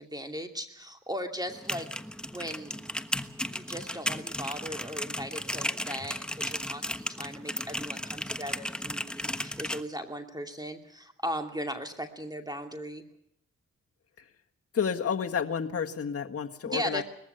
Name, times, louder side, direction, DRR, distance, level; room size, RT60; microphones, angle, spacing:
voice 1, 0.0-1.9 2.3-2.8 3.5-13.0 16.7-17.0, equal, 10° right, 5 dB, 2.6 m, -37 dB
sound 1, 1.5-9.8, equal, 5° left, 1.3 m, -35 dB
voice 2, 14.7-17.0, left 7 dB, 45° left, 3 dB, 1.7 m, -30 dB
21.0 x 15.0 x 9.3 m, 0.72 s
cardioid pair, 55°, 31 cm